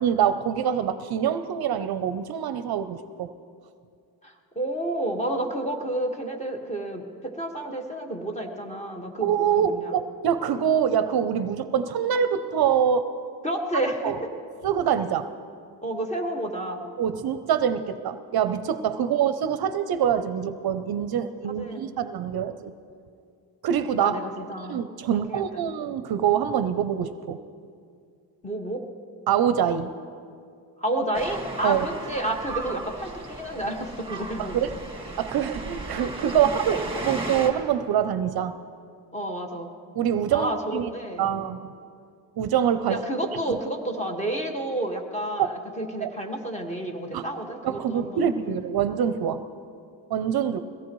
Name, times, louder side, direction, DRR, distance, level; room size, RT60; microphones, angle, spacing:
voice 1, 0.0-3.3 9.2-13.1 14.0-14.2 14.6-15.3 17.0-22.7 23.6-24.2 24.7-27.4 29.3-29.9 31.6-31.9 34.4-34.7 35.2-38.5 40.0-40.9 41.2-41.7 42.4-43.0 43.5-43.6 45.4-45.5 46.0-46.1 47.1-47.2 47.6-49.4 50.1-50.6, right 8 dB, 55° right, 11 dB, 0.6 m, -25 dB
voice 2, 4.2-9.9 13.4-14.3 15.8-16.9 19.0-19.1 21.2-21.3 21.6-22.0 24.0-24.8 25.1-25.6 28.4-28.8 30.8-34.6 39.1-39.7 40.3-41.3 42.9-48.4, right 1 dB, 15° left, 1 dB, 1.6 m, -30 dB
sound 1, 31.1-37.5, right 2 dB, 10° right, 1.9 m, -35 dB
22.0 x 17.0 x 3.1 m, 2.3 s
cardioid pair, 115°, 44 cm